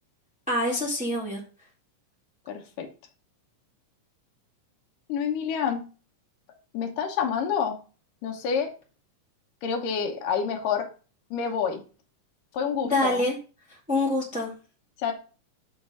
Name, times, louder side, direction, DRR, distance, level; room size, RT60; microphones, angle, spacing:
voice 1, 0.5-1.4 12.8-13.4 13.9-14.5, left 1 dB, 5° right, -3 dB, 1.0 m, -25 dB
voice 2, 2.5-2.9 5.1-5.8 6.7-7.8 8.2-8.7 9.6-10.9 11.3-11.8 12.5-13.2 15.0-15.1, left 7 dB, 80° left, 3 dB, 2.6 m, -28 dB
6.4 x 6.0 x 5.4 m, 0.36 s
omnidirectional pair, 3.8 m